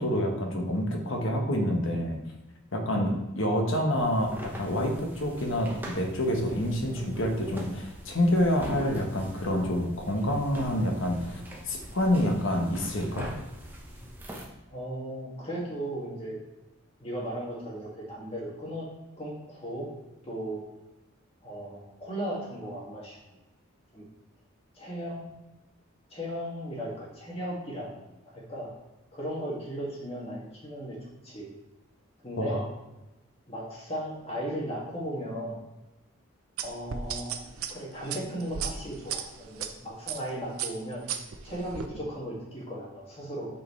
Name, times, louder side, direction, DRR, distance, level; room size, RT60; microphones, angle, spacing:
voice 1, 0.0-2.2 2.7-11.4 11.7-13.3 32.4-32.7, left 1 dB, 65° left, 2 dB, 1.2 m, -27 dB
sound 1, 3.9-14.4, equal, 10° right, 0.9 m, -42 dB
voice 2, 14.7-16.4 17.0-18.9 19.2-19.9 20.2-20.6 21.4-23.2 23.9-24.1 24.8-25.3 26.1-27.9 28.2-28.7 29.1-31.0 31.2-31.5 32.2-32.6 33.5-35.6 36.6-37.4 37.7-41.0 41.4-43.5, equal, 30° left, -5 dB, 2.0 m, -36 dB
sound 2, 36.6-39.7 40.1-40.3 40.6-41.9, right 8 dB, 90° right, 0.6 m, -35 dB
8.3 x 4.8 x 3.2 m, 1.0 s
head